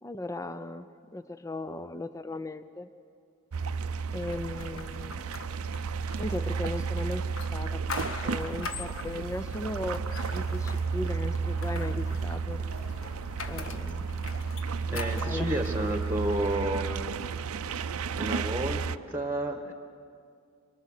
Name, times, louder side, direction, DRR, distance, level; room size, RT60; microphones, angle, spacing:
voice 1, 0.0-2.9 4.1-5.3 6.2-10.0 10.3-12.7 13.5-14.0 15.1-15.5 15.8-15.9, left 2 dB, 15° left, 12 dB, 0.5 m, -37 dB
sound 1, 3.5-19.0, right 5 dB, 85° right, 0.5 m, -32 dB
sound 2, 4.3-16.5, left 4 dB, 70° left, 1.4 m, -43 dB
voice 2, 14.9-16.9 18.2-19.7, right 1 dB, 10° right, 4 dB, 1.5 m, -31 dB
24.0 x 23.5 x 6.6 m, 2.3 s
head